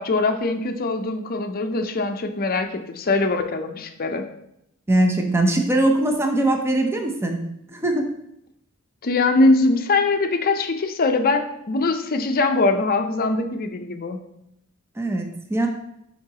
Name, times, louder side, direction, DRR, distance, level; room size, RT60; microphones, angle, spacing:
voice 1, 0.0-4.3 9.0-14.2, left 3 dB, 45° left, 6 dB, 0.5 m, -22 dB
voice 2, 4.9-7.4 7.7-8.1 15.0-15.7, right 1 dB, 10° right, 3 dB, 0.6 m, -21 dB
9.2 x 4.0 x 2.9 m, 0.79 s
head